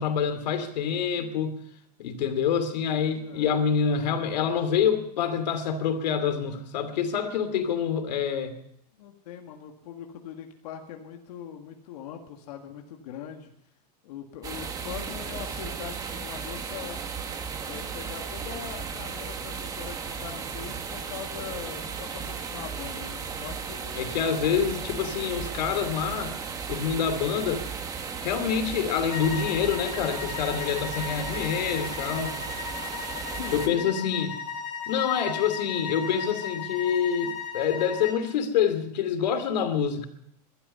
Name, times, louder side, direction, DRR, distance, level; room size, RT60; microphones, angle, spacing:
voice 1, 0.0-1.6 2.0-8.5 23.9-26.3 26.7-27.6 28.2-32.3 33.5-34.3 34.9-40.1, left 7 dB, 85° left, 9 dB, 2.6 m, -26 dB
voice 2, 2.9-3.5 9.0-13.5 14.0-17.0 17.6-23.9 24.3-24.5 33.4-34.0, left 9 dB, 60° left, 3 dB, 1.9 m, -41 dB
sound 1, 14.4-33.7, right 6 dB, 15° right, 1.3 m, -35 dB
sound 2, 29.1-38.2, left 7 dB, 45° left, 4.5 m, -36 dB
21.0 x 12.0 x 5.5 m, 0.74 s
supercardioid pair, 165°, 21 cm